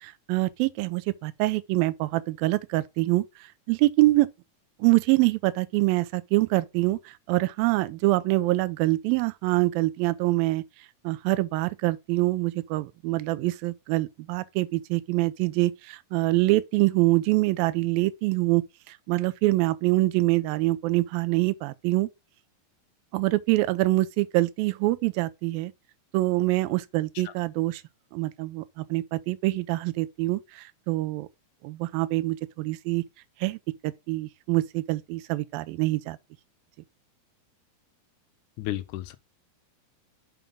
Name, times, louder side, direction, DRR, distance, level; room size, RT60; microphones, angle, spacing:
voice 1, 0.0-3.2 3.7-4.3 4.8-7.0 7.3-10.6 11.0-22.1 23.1-25.7 26.1-27.8 28.1-31.3 31.6-33.0 33.4-36.2, right 19 dB, 80° right, 2.4 m, -25 dB
voice 2, 38.6-39.2, left 14 dB, 90° left, 1.7 m, -33 dB
7.2 x 5.3 x 3.6 m
omnidirectional pair, 4.3 m